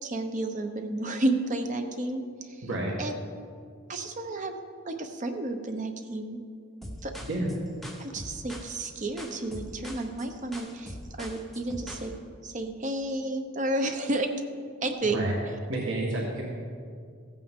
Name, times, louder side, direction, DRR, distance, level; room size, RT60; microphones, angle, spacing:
voice 1, 0.0-2.6 3.0-3.2 3.9-4.5 4.8-6.4 7.0-7.1 8.0-12.1 12.4-14.3 14.8-15.3, right 2 dB, 40° right, 6 dB, 0.9 m, -31 dB
voice 2, 2.6-2.9 7.2-7.5 15.1-15.3 15.7-16.5, right 1 dB, 65° right, -3 dB, 1.7 m, -30 dB
sound 1, 6.8-12.1, equal, ahead, 1.0 m, -42 dB
15.5 x 8.8 x 3.7 m, 2.2 s
head